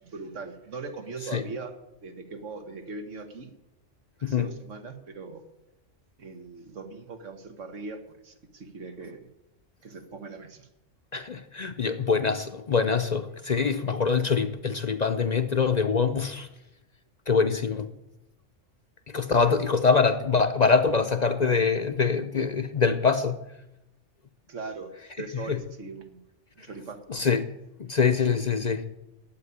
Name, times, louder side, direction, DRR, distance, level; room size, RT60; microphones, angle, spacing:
voice 1, 0.0-1.7 2.0-3.5 4.3-5.4 6.2-9.3 9.8-10.7 19.4-19.6 24.5-24.9 25.2-26.2 26.6-27.0, right 4 dB, 85° right, 1.8 m, -40 dB
voice 2, 11.1-16.5 17.3-17.9 19.1-23.4 25.5-25.6 27.1-27.5 27.9-28.8, left 5 dB, 45° left, 0.6 m, -24 dB
11.5 x 8.3 x 9.8 m
omnidirectional pair, 1.2 m